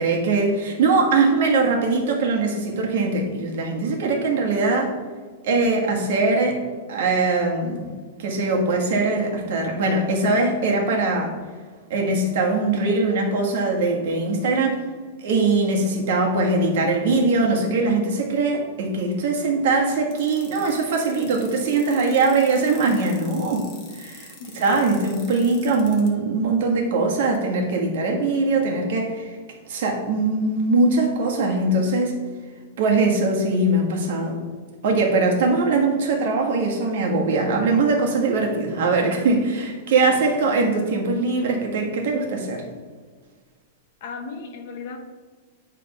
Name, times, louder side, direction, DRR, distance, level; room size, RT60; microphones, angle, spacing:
voice 1, 0.0-4.9 5.4-6.6 6.9-7.9 8.2-11.3 11.9-14.8 15.2-23.7 23.9-24.3 24.5-29.4 29.7-32.2 32.8-34.4 34.8-42.6, right 3 dB, 50° right, 1 dB, 1.4 m, -21 dB
voice 2, 15.3-15.6 24.4-24.5 40.0-40.4 44.0-45.0, left 5 dB, 45° left, 5 dB, 0.9 m, -36 dB
sound 1, 20.1-26.1, left 5 dB, 25° left, 1.2 m, -45 dB
9.2 x 3.4 x 5.3 m, 1.5 s
supercardioid pair, 175°, 0 cm